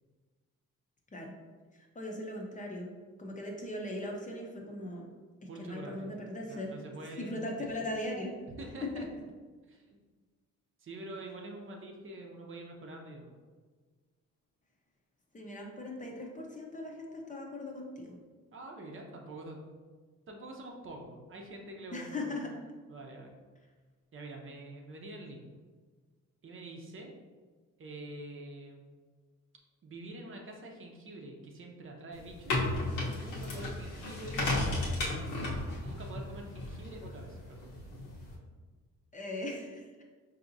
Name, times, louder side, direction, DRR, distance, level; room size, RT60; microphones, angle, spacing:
voice 1, 1.7-2.9 3.2-5.0 5.4-6.7 7.2-8.3 8.8-9.1 15.3-18.2 21.9-22.5 39.1-39.9, left 1 dB, 25° left, 0 dB, 0.7 m, -39 dB
voice 2, 5.5-6.1 6.4-7.4 8.6-9.1 9.7-9.8 10.8-13.3 18.5-19.6 20.3-22.4 22.9-23.4 24.1-25.4 26.4-27.1 27.8-28.8 29.8-35.0 35.8-37.7, right 1 dB, 45° right, 1 dB, 0.7 m, -46 dB
sound 1, 32.1-38.3, left 2 dB, 80° left, 1.1 m, -34 dB
4.6 x 2.8 x 2.6 m, 1.5 s
cardioid pair, 90°, 30 cm